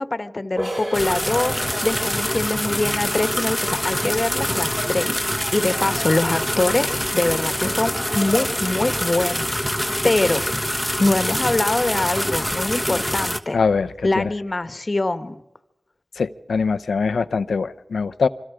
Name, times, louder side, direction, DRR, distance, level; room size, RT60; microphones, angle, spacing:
voice 1, 0.0-5.2 5.5-9.7 10.0-10.4 11.0-13.6 14.0-15.4, left 2 dB, 40° left, 11 dB, 1.4 m, -23 dB
sound 1, 0.6-6.0, right 1 dB, 30° right, 5.3 m, -37 dB
sound 2, 0.9-13.4, equal, 5° left, 1.3 m, -25 dB
voice 2, 13.5-14.3 16.2-18.3, left 5 dB, 80° left, 12 dB, 0.7 m, -22 dB
25.5 x 25.0 x 5.0 m, 0.90 s
cardioid pair, 40°, 0 cm